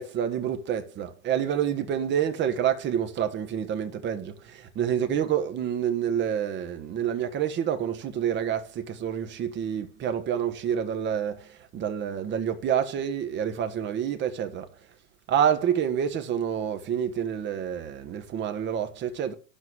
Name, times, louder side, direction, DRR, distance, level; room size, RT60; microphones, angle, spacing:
voice 1, 0.0-14.7 15.3-19.3, right 9 dB, 25° right, 1.5 m, -28 dB
12.0 x 4.4 x 7.1 m
figure-of-eight pair, 105°, 41 cm